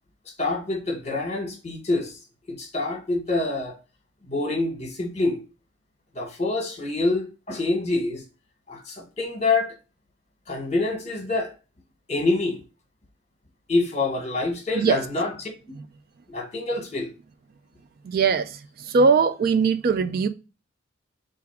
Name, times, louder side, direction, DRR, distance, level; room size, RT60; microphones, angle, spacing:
voice 1, 0.4-2.2 2.5-3.8 4.2-5.4 6.1-8.2 8.7-9.7 10.5-11.5 12.1-12.6 13.7-15.5 16.3-17.1, left 2 dB, 35° left, 1.1 m, -26 dB
voice 2, 18.0-18.6 18.9-20.3, right 5 dB, 50° right, 0.3 m, -20 dB
3.5 x 2.5 x 4.5 m
head